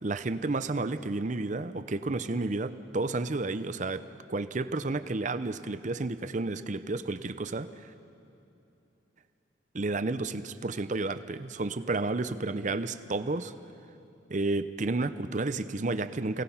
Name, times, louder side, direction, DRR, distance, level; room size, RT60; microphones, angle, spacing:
voice 1, 0.0-4.0 4.3-7.7 9.7-13.5 14.3-16.4, right 3 dB, 40° right, 12 dB, 0.6 m, -31 dB
29.5 x 18.5 x 5.7 m, 2.8 s
head